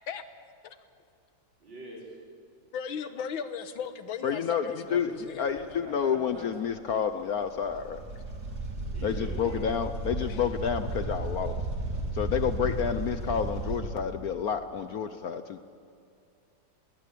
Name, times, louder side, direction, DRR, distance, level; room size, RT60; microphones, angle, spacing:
voice 1, 1.6-2.2 8.9-9.6, right 1 dB, 70° right, -3 dB, 5.8 m, -44 dB
voice 2, 2.7-5.8 10.3-10.4, left 7 dB, 90° left, 10 dB, 1.9 m, -37 dB
voice 3, 4.2-4.7 4.9-5.1 5.4-8.0 9.0-11.6 12.1-15.6, left 7 dB, 60° left, 10 dB, 1.0 m, -29 dB
sound 1, 4.9-6.5 6.8-6.9 7.3-13.8, right 2 dB, 50° right, 3.5 m, -34 dB
21.0 x 19.0 x 8.5 m, 2.5 s
omnidirectional pair, 2.1 m